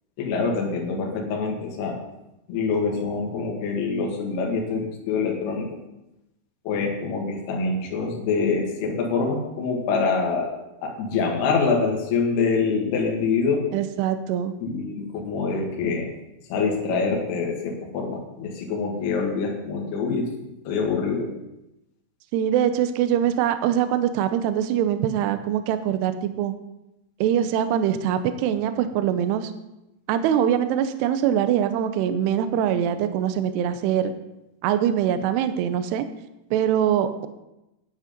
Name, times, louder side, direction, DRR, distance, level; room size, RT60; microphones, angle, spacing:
voice 1, 0.2-2.0 2.5-5.7 6.7-10.5 10.8-13.7 14.6-16.1 16.5-20.3 20.7-21.4, left 4 dB, 60° left, 0 dB, 3.5 m, -25 dB
voice 2, 13.7-14.6 22.3-26.5 27.2-29.5 30.1-34.1 34.6-36.1 36.5-37.3, right 10 dB, 80° right, 10 dB, 2.5 m, -23 dB
10.5 x 9.6 x 5.2 m, 0.93 s
omnidirectional pair, 5.7 m